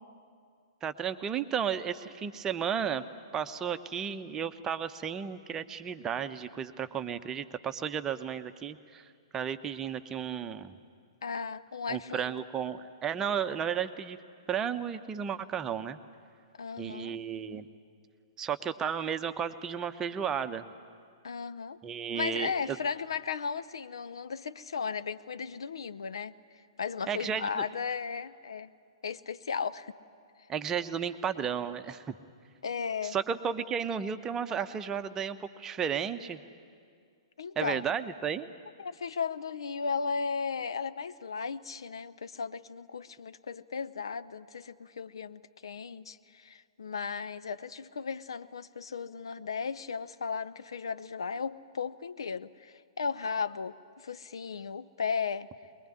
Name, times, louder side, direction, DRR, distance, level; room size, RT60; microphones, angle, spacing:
voice 1, 0.8-3.0 3.3-9.1 9.3-10.8 11.9-14.2 14.5-16.0 16.8-17.7 18.4-20.7 21.8-22.5 27.1-27.7 30.5-32.1 33.0-36.4 37.6-38.5, right 7 dB, 20° right, 9 dB, 0.9 m, -33 dB
voice 2, 11.2-12.3 16.6-17.2 21.2-21.8 22.1-26.3 26.8-28.7 29.0-29.9 32.6-33.2 37.4-37.8 38.8-55.5, left 5 dB, 65° left, 13 dB, 0.7 m, -35 dB
23.0 x 21.5 x 9.8 m, 2.2 s
figure-of-eight pair, 115°, 3 cm